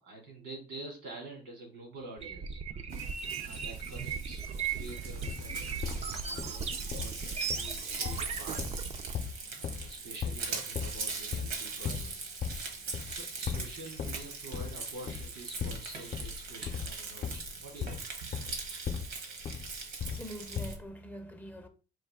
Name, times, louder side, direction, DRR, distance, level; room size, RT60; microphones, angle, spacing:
voice 1, 0.0-3.0 3.4-8.6 9.5-12.2 13.1-18.0, right 2 dB, 85° right, 2.5 m, -48 dB
sound 1, 2.2-9.2, right 6 dB, 40° right, 0.5 m, -37 dB
Frying (food), 2.9-20.8, right 4 dB, 70° right, 1.2 m, -41 dB
sound 2, 5.3-6.0 6.4-6.6 6.9-7.2 7.5-7.8 8.0-9.9 10.2-10.4 10.7-11.0 11.3-11.6 11.8-12.1 12.4-12.7 12.9-13.2 13.5-14.2 14.5-14.8 15.1-15.3 15.6-15.9 16.1-19.2 19.4-20.3 20.6-20.9, left 7 dB, 45° left, 0.7 m, -37 dB
voice 2, 20.0-21.7, equal, 10° left, 0.6 m, -44 dB
4.5 x 2.6 x 3.6 m
cardioid pair, 110°, 17 cm